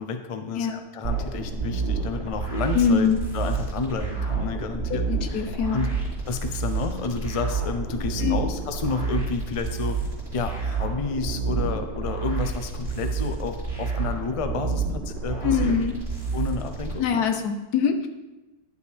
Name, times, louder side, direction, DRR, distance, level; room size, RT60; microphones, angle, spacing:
voice 1, 0.0-0.7 0.9-3.1 3.3-5.9 6.3-10.0 10.3-15.7 16.3-17.0, left 4 dB, 55° left, 7 dB, 0.3 m, -30 dB
sound 1, 1.0-16.9, right 5 dB, 45° right, 4.0 m, -29 dB
voice 2, 2.7-3.2 4.9-5.8 8.2-8.4 15.4-15.9 17.0-18.1, left 6 dB, 80° left, 6 dB, 1.3 m, -23 dB
11.0 x 7.2 x 3.3 m, 1.1 s
omnidirectional pair, 1.6 m